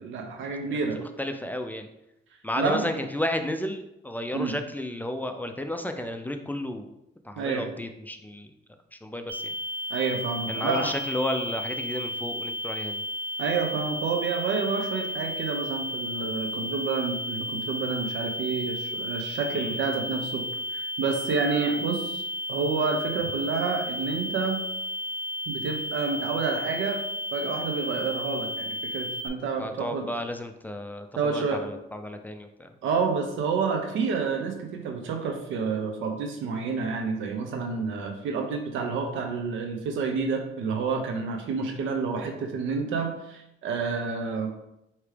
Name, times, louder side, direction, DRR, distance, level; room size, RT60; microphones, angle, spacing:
voice 1, 0.0-1.0 2.6-2.9 4.3-4.5 7.4-7.6 9.9-10.9 13.4-20.4 20.7-24.6 25.5-27.0 27.3-30.0 31.2-31.6 32.8-44.7, right 5 dB, 80° right, 3 dB, 0.7 m, -29 dB
voice 2, 1.2-1.9 2.4-6.9 7.2-8.5 8.9-9.6 10.5-13.0 19.5-19.8 29.6-32.7, left 1 dB, 10° left, 6 dB, 0.4 m, -32 dB
sound 1, 9.3-29.3, left 1 dB, 50° right, 0.5 m, -33 dB
4.7 x 2.9 x 3.3 m, 0.85 s
cardioid pair, 90°, 20 cm